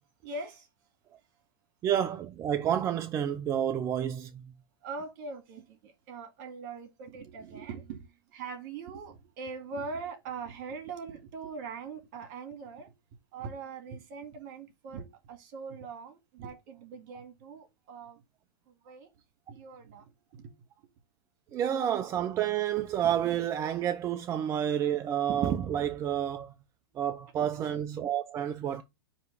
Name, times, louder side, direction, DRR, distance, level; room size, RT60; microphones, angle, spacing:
voice 1, 0.2-0.7 4.8-12.9 13.3-18.2 18.7-19.1 19.5-20.5 27.5-27.7, right 4 dB, 50° right, 2.0 m, -42 dB
voice 2, 1.8-4.5 21.5-26.5 27.0-28.8, right 10 dB, 25° right, 0.5 m, -29 dB
9.3 x 3.1 x 3.3 m
hypercardioid pair, 125°, 12 cm